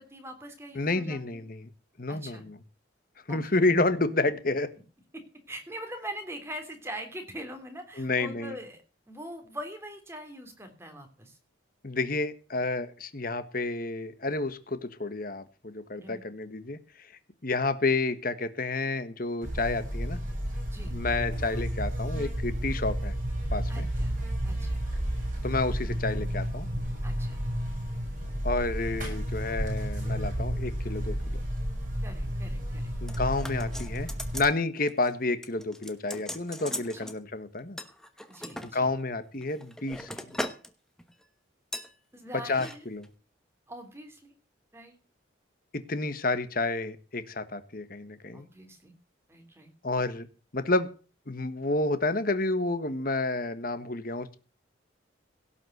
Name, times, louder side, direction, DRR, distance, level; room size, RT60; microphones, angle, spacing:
voice 1, 0.0-1.4 2.1-2.4 3.3-3.6 5.1-8.8 9.1-11.4 15.9-16.2 20.7-21.0 23.7-24.2 24.4-24.9 27.0-27.4 32.0-32.9 38.3-38.9 42.1-42.8 43.7-44.3 44.7-44.9 48.3-48.9 49.3-49.7, equal, 15° right, 5 dB, 3.2 m, -42 dB
voice 2, 0.7-1.7 2.0-2.6 3.3-4.7 8.0-8.5 11.8-16.8 17.4-20.2 20.9-23.1 23.5-23.9 25.4-26.7 28.4-31.4 33.0-37.8 38.6-40.1 42.3-43.0 45.7-48.5 49.8-50.3 50.5-50.9 51.3-54.4, left 2 dB, 45° left, 11 dB, 1.4 m, -30 dB
Buzz, 19.4-34.4, equal, 40° right, 7.1 m, -32 dB
sound 1, 33.1-34.6 34.9-35.1 35.4-37.2 37.8-38.7 39.3-40.7 41.0-41.2 41.7-41.9 42.5-42.8 43.0-43.1, left 1 dB, 5° left, 1.0 m, -38 dB
17.0 x 5.8 x 7.9 m, 0.36 s
head